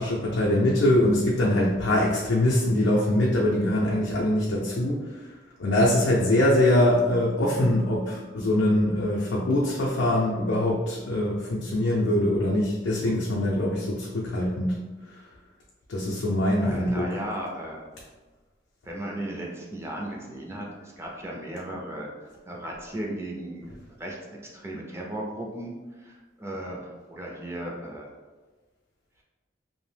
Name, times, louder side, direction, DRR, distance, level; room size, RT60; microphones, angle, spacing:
voice 1, 0.0-5.2 5.6-14.7 15.1-15.2 15.9-17.1, left 1 dB, 85° left, -4 dB, 0.4 m, -23 dB
voice 2, 16.6-17.9 18.8-22.1 22.4-23.7 24.0-24.2 24.5-28.1, right 1 dB, 15° right, -2 dB, 0.4 m, -36 dB
2.6 x 2.0 x 3.2 m, 1.3 s
head